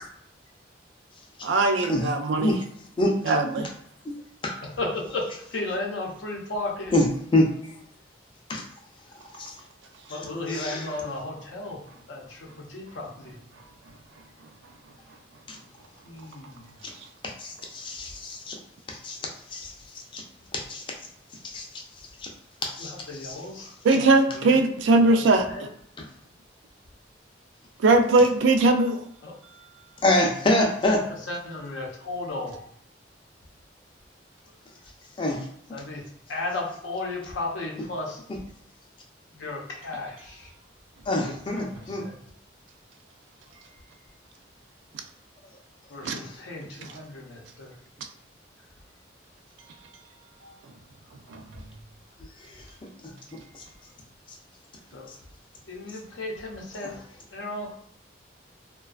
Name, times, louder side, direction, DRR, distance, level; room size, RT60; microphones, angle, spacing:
voice 1, 1.4-2.5 3.3-3.7 23.8-25.5 27.8-29.0 46.0-46.1 51.3-51.4, right 2 dB, 80° right, 6 dB, 0.3 m, -20 dB
voice 2, 4.6-6.9 10.1-11.8 12.1-13.4 16.0-16.7 22.8-24.1 24.3-24.7 25.0-25.7 29.2-29.3 31.3-32.6 35.7-38.2 39.4-40.5 41.2-42.2 45.9-47.7 54.9-55.1 55.7-57.1 57.3-57.7, left 2 dB, 90° left, -1 dB, 0.6 m, -35 dB
voice 3, 6.9-7.5 8.5-8.6 9.4-9.5 10.1-10.2 10.5-10.9 15.5-15.6 17.4-18.5 18.9-19.7 20.1-20.2 20.5-20.8 21.4-21.7 22.2-22.3 22.6-23.4 30.0-31.0 35.2-35.4 41.1-42.1 46.2-46.4 53.5-53.6 56.8-56.9, left 1 dB, 25° left, 0 dB, 0.4 m, -26 dB
2.4 x 2.2 x 2.3 m, 0.67 s
head